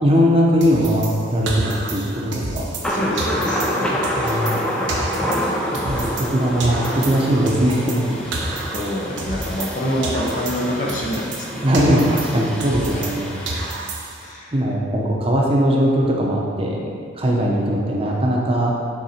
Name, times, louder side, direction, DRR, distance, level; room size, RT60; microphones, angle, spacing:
voice 1, 0.0-2.6 4.1-4.6 5.8-8.2 11.6-13.4 14.5-16.8 17.2-18.7, equal, 30° right, -2 dB, 0.7 m, -19 dB
sound 1, 0.6-2.9 3.2-6.3 6.6-9.8 10.0-13.2 13.5-14.3, right 2 dB, 70° right, 0.8 m, -30 dB
voice 2, 2.8-3.6 8.7-11.5 11.9-12.2 12.9-13.1 14.2-14.5, equal, 40° left, -2 dB, 0.8 m, -26 dB
Thunder, 2.8-13.7, equal, 5° left, 0.5 m, -27 dB
6.3 x 3.9 x 4.3 m, 2.3 s
head